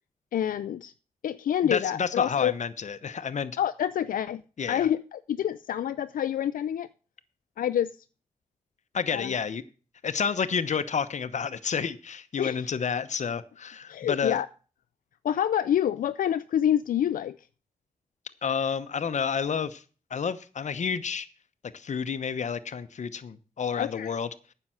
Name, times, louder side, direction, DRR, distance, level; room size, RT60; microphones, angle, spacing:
voice 1, 0.3-0.9 1.2-2.5 3.6-4.4 4.7-6.9 7.6-8.0 9.1-9.4 12.4-12.7 13.9-14.5 15.2-17.4 23.8-24.1, left 10 dB, 85° left, 12 dB, 0.4 m, -27 dB
voice 2, 1.6-3.6 4.6-4.9 8.9-9.6 10.0-14.4 18.4-19.8 20.1-21.3 21.7-24.5, left 6 dB, 60° left, 12 dB, 0.9 m, -30 dB
9.6 x 6.8 x 7.5 m, 0.37 s
cardioid pair, 80°, 14 cm